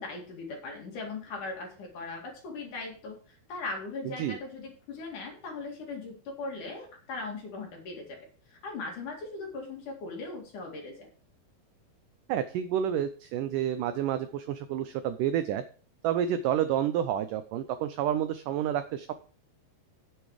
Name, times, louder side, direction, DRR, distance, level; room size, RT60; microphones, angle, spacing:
voice 1, 0.0-11.1, left 3 dB, 55° left, 1 dB, 3.6 m, -39 dB
voice 2, 12.3-15.6 16.0-19.1, right 10 dB, 85° right, 10 dB, 1.8 m, -29 dB
9.5 x 8.1 x 4.9 m, 0.41 s
omnidirectional pair, 4.5 m